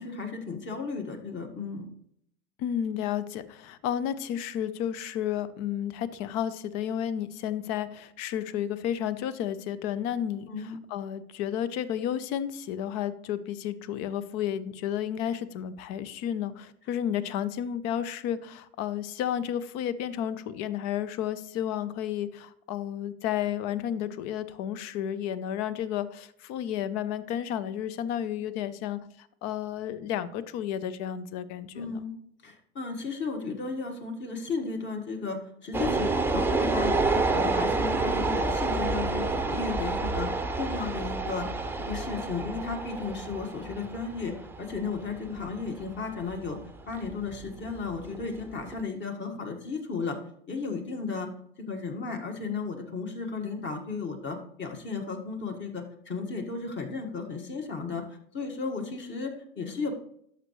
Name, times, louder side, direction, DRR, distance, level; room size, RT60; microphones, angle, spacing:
voice 1, 0.0-1.9 10.5-10.8 31.7-32.2 32.4-40.3 40.6-46.6 46.9-50.2 50.5-51.3 51.6-58.0 58.3-59.9, left 4 dB, 35° left, 3 dB, 1.7 m, -34 dB
voice 2, 2.6-32.0, left 10 dB, 55° left, 15 dB, 0.7 m, -32 dB
sound 1, 35.7-48.8, right 3 dB, 5° right, 0.7 m, -29 dB
11.0 x 6.8 x 3.1 m, 0.70 s
hypercardioid pair, 90°, 31 cm